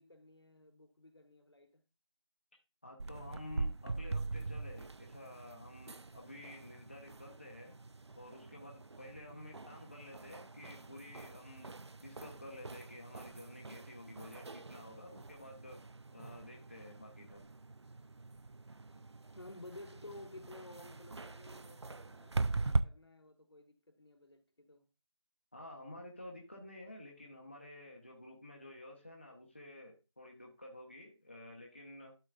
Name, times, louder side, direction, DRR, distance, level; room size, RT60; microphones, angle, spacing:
voice 1, 0.0-1.8 9.3-9.4 19.3-24.9, left 2 dB, 60° left, 1.5 m, -54 dB
voice 2, 2.8-7.8 8.2-15.8 16.1-17.4 25.5-32.2, left 1 dB, 25° left, 0.9 m, -51 dB
sound 1, 3.0-22.8, right 3 dB, 65° right, 0.5 m, -42 dB
12.0 x 4.7 x 2.4 m
figure-of-eight pair, 180°, 15 cm